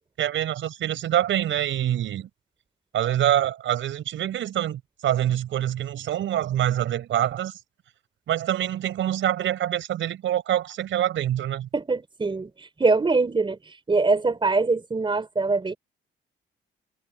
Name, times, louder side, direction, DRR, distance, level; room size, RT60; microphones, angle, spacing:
voice 1, 0.2-2.3 2.9-7.5 8.3-11.7, right 11 dB, 75° right, 6.1 m, -25 dB
voice 2, 11.7-12.5 12.8-13.6 13.9-15.8, right 3 dB, 25° right, 4.2 m, -23 dB
cardioid pair, 90°, 20 cm